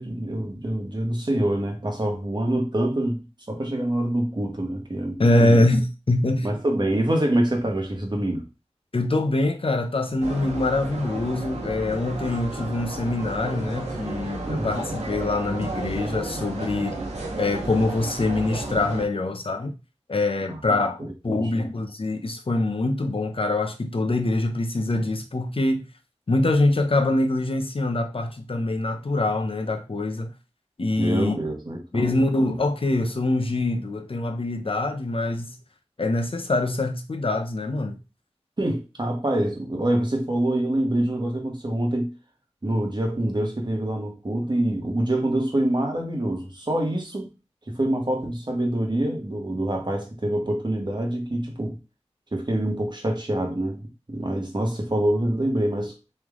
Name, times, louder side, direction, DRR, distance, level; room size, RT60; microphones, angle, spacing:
voice 1, 0.0-3.2 3.5-5.7 6.4-8.5 14.4-14.7 20.5-20.6 21.0-21.6 31.0-32.1 38.6-42.1 42.6-47.3 47.7-51.8 52.3-55.9, right 1 dB, 40° right, 1.3 m, -26 dB
voice 2, 5.2-6.5 8.9-17.0 17.4-19.8 20.1-25.9 26.3-30.3 30.8-31.4 31.9-35.6 36.0-38.0, left 2 dB, 55° left, 0.7 m, -24 dB
sound 1, 10.2-19.0, right 2 dB, 90° right, 0.9 m, -33 dB
3.3 x 3.1 x 3.6 m
wide cardioid pair, 55°, 11 cm